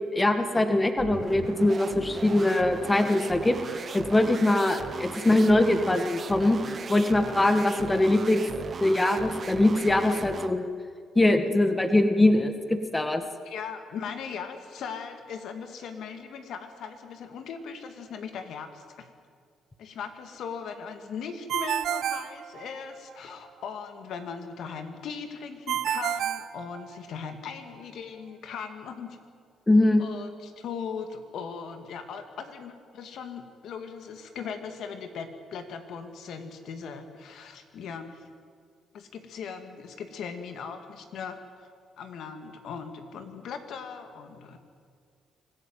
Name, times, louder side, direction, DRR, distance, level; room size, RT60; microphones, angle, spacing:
voice 1, 0.1-6.6 6.9-8.5 8.8-10.7 11.2-13.2 29.7-30.0, left 1 dB, 20° left, 7 dB, 1.8 m, -22 dB
sound 1, 1.0-10.6, right 5 dB, 45° right, 1.1 m, -38 dB
voice 2, 13.4-19.1 19.8-29.2 30.0-38.2 38.9-41.4 42.0-44.6, left 6 dB, 75° left, 7 dB, 2.4 m, -39 dB
Ringtone, 21.5-23.1 25.7-27.3, right 11 dB, 75° right, 0.6 m, -30 dB
25.0 x 15.0 x 9.1 m, 2.1 s
cardioid pair, 80°, 0 cm